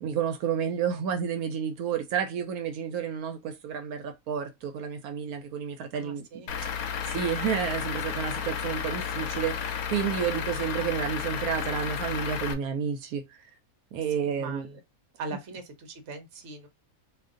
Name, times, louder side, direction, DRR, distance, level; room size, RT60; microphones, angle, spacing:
voice 1, 0.0-6.3 6.6-13.5 13.9-14.7 15.3-15.4, right 7 dB, 80° right, 1.1 m, -31 dB
voice 2, 5.9-6.5 14.4-14.8 15.2-16.7, right 3 dB, 60° right, 1.0 m, -40 dB
Truck / Idling, 6.5-12.5, left 7 dB, 80° left, 1.0 m, -32 dB
2.7 x 2.6 x 3.6 m
omnidirectional pair, 1.6 m